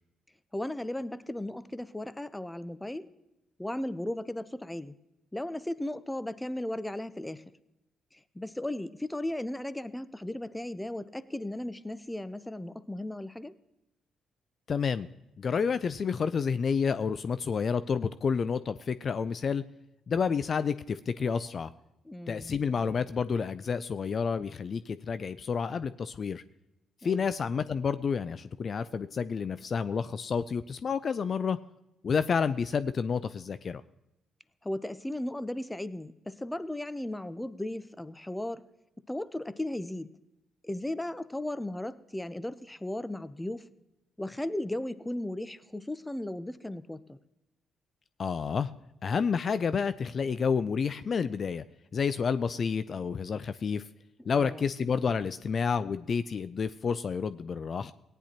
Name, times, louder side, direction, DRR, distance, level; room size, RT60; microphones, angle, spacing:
voice 1, 0.5-3.1 3.6-5.0 5.3-7.4 8.1-13.6 22.0-22.5 27.0-27.3 34.6-38.6 39.1-40.1 40.6-43.7 44.2-47.2 54.4-54.7, left 1 dB, 10° left, 15 dB, 0.7 m, -36 dB
voice 2, 14.7-15.1 15.4-19.7 20.1-21.7 22.3-26.4 27.0-31.6 32.0-33.8 48.2-48.7 49.0-51.6 51.9-53.8 54.3-57.9, left 6 dB, 50° left, 14 dB, 0.4 m, -29 dB
18.0 x 10.0 x 2.9 m, 0.93 s
hypercardioid pair, 45°, 0 cm